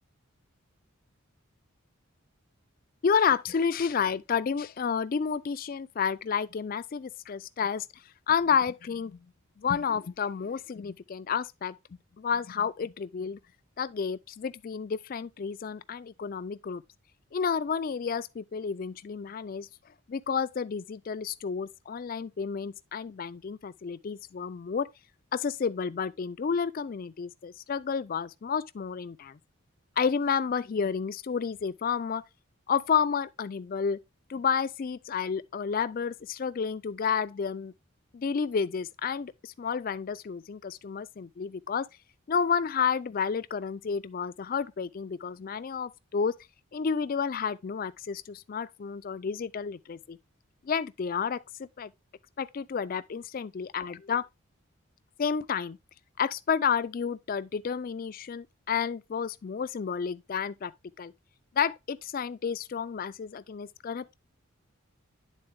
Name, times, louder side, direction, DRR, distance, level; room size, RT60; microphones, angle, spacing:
voice 1, 3.0-7.9 8.3-9.2 9.6-11.8 12.2-13.4 13.8-16.8 17.3-19.7 20.1-24.9 25.3-29.4 30.0-32.2 32.7-34.0 34.3-37.7 38.1-41.9 42.3-46.4 46.7-50.2 50.6-51.9 52.4-54.3 55.2-55.8 56.2-60.7 61.0-61.1 61.5-64.1, left 6 dB, 40° left, 0.3 m, -30 dB
9.9 x 3.9 x 3.4 m
head